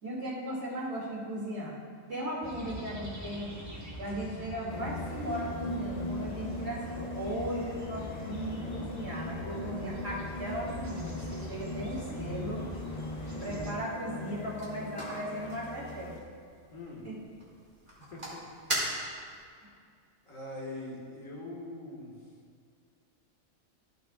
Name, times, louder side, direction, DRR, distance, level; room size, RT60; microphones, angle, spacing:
voice 1, 0.0-1.8 2.1-3.5 4.0-12.7 13.4-16.1 17.0-17.2, equal, 55° right, -7 dB, 2.8 m, -37 dB
sound 1, 2.4-13.7, right 2 dB, 15° right, 1.0 m, -43 dB
sound 2, 4.7-16.2, left 2 dB, 55° left, 0.4 m, -40 dB
voice 2, 13.3-13.6 16.7-17.0 18.1-18.4 18.8-19.7 20.3-22.1, left 1 dB, 80° left, -4 dB, 2.2 m, -44 dB
sound 3, 14.2-19.4, right 1 dB, 35° right, 2.7 m, -40 dB
14.5 x 8.6 x 2.4 m, 2.2 s
omnidirectional pair, 1.3 m